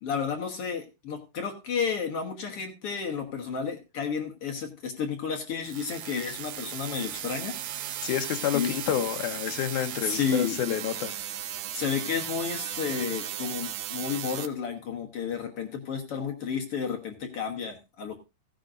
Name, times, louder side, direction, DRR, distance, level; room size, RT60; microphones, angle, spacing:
voice 1, 0.0-7.5 8.5-8.7 10.0-10.6 11.7-18.2, left 6 dB, 55° left, 3 dB, 1.9 m, -31 dB
sound 1, 5.6-14.5, right 11 dB, 75° right, 2.2 m, -36 dB
voice 2, 8.0-11.1, left 11 dB, 70° left, 7 dB, 2.3 m, -29 dB
16.5 x 10.0 x 2.6 m, 0.25 s
omnidirectional pair, 3.9 m